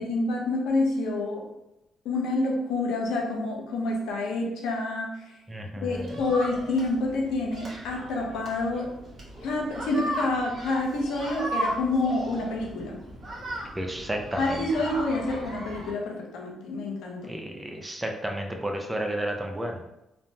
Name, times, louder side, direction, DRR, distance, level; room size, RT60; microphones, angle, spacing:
voice 1, 0.0-1.4 2.0-5.1 5.8-8.9 9.4-13.0 14.4-17.3, left 2 dB, 90° left, 0 dB, 0.6 m, -28 dB
voice 2, 5.5-6.2 13.8-14.6 17.3-19.9, right 1 dB, 15° right, 2 dB, 0.4 m, -32 dB
sound 1, 5.9-15.9, right 1 dB, 45° right, 1.1 m, -37 dB
3.3 x 2.1 x 2.7 m, 0.89 s
cardioid pair, 90°, 0 cm